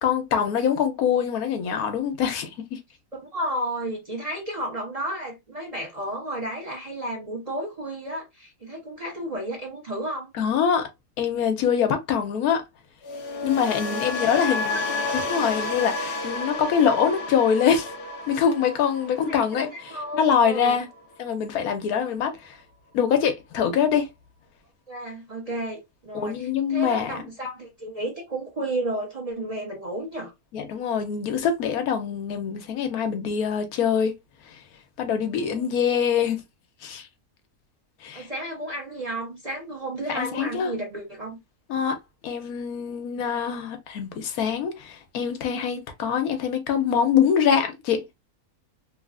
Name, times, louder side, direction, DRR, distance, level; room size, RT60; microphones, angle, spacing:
voice 1, 0.0-2.8 10.4-10.9 11.2-12.6 13.4-17.9 18.3-20.9 21.2-22.6 22.9-24.1 26.1-27.1 30.5-34.1 35.0-36.4 36.8-37.1 38.0-38.3 40.1-40.7 41.7-42.0 42.2-48.0, left 7 dB, 85° left, 1.2 m, -24 dB
voice 2, 3.3-10.3 13.8-14.8 19.3-20.8 24.9-30.3 35.5-35.7 38.1-41.4, right 1 dB, 35° right, 0.7 m, -32 dB
sound 1, 13.0-21.1 21.4-21.8, left 3 dB, 60° left, 0.8 m, -31 dB
3.1 x 2.4 x 2.3 m
omnidirectional pair, 1.5 m